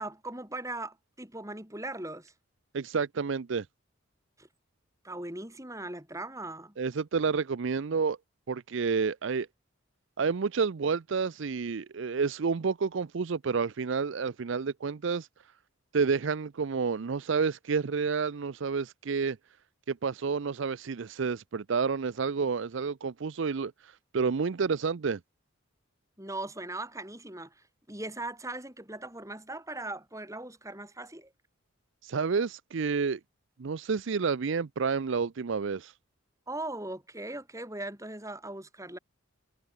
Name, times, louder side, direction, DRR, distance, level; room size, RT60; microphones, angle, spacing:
voice 1, 0.0-2.3 4.4-4.5 5.0-6.8 26.2-31.3 36.5-39.0, right 2 dB, 15° right, 6.4 m, -39 dB
voice 2, 2.7-3.7 6.8-8.2 8.5-9.5 10.2-15.3 15.9-19.4 19.9-25.2 32.0-33.2 33.6-35.9, right 5 dB, 60° right, 0.5 m, -29 dB
head